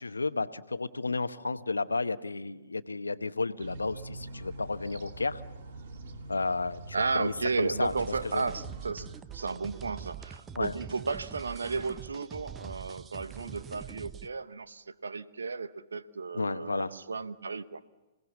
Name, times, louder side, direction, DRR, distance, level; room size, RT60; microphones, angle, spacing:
voice 1, 0.0-5.4 6.3-7.9 8.3-8.4 10.5-10.7 16.3-16.9, left 3 dB, 90° left, 0.9 m, -32 dB
sound 1, 3.6-9.2, right 2 dB, 60° right, 2.5 m, -44 dB
voice 2, 6.9-17.8, right 4 dB, 80° right, 1.0 m, -34 dB
sound 2, 7.8-14.3, right 8 dB, 20° right, 0.8 m, -44 dB
27.0 x 18.0 x 7.2 m
hypercardioid pair, 120°, 0 cm